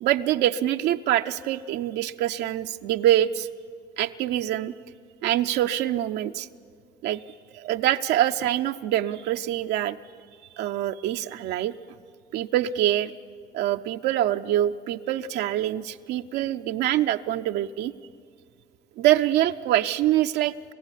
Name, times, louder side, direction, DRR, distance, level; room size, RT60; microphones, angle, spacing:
voice 1, 0.0-3.5 4.0-4.7 5.2-6.5 7.0-7.2 7.5-10.0 10.6-11.7 12.3-13.1 13.5-17.9 19.0-20.5, right 13 dB, 80° right, 6 dB, 0.6 m, -24 dB
29.0 x 15.0 x 9.9 m, 2.1 s
cardioid pair, 110°, 17 cm